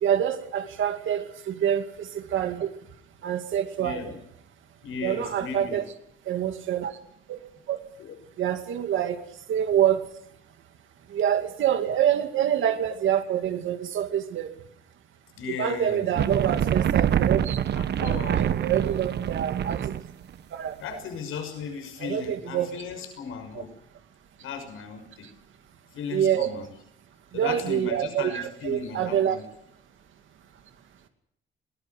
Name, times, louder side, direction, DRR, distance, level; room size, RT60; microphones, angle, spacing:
voice 1, 0.0-2.7 3.2-4.1 5.0-5.8 6.3-7.0 7.3-7.4 7.7-7.8 8.4-9.2 9.5-10.0 11.1-14.5 15.6-17.6 18.0-20.0 20.5-20.8 22.0-22.7 26.1-26.5 27.3-29.4, right 10 dB, 70° right, 7 dB, 2.4 m, -26 dB
voice 2, 3.8-4.2 4.8-5.8 8.0-8.2 15.4-16.3 17.7-18.5 20.8-23.7 24.4-25.3 25.9-26.7 27.3-29.5, left 6 dB, 90° left, 6 dB, 6.0 m, -36 dB
sound 1, 16.2-20.1, right 9 dB, 55° right, 1.1 m, -25 dB
21.0 x 20.0 x 7.9 m, 0.72 s
cardioid pair, 170°, 21 cm